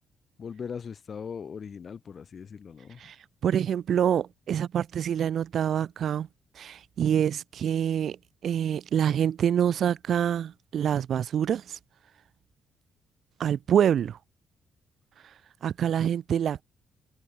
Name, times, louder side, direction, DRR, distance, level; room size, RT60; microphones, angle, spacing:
voice 1, 0.4-3.0, left 6 dB, 35° left, 2.6 m, -39 dB
voice 2, 3.4-6.3 6.5-8.2 8.4-11.8 13.4-14.2 15.2-15.3 15.6-16.6, right 9 dB, 50° right, 0.7 m, -26 dB
cardioid pair, 175°, 0 cm